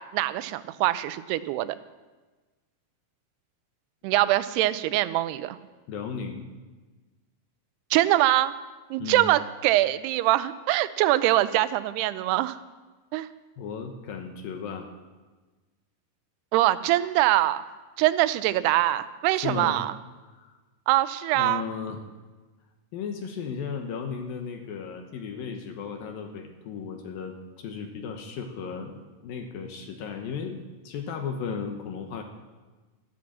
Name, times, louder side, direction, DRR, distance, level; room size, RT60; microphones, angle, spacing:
voice 1, 0.0-1.8 4.0-5.6 7.9-8.5 8.9-12.6 13.1-13.3 16.5-17.7 18.0-19.9 20.9-21.6, right 15 dB, 85° right, 14 dB, 2.6 m, -23 dB
voice 2, 5.9-6.4 9.0-9.3 13.6-14.9 19.4-19.8 20.3-20.5 21.3-22.0 22.9-30.6 30.8-32.2, left 6 dB, 70° left, 4 dB, 2.6 m, -35 dB
13.5 x 12.0 x 7.4 m, 1.3 s
omnidirectional pair, 4.8 m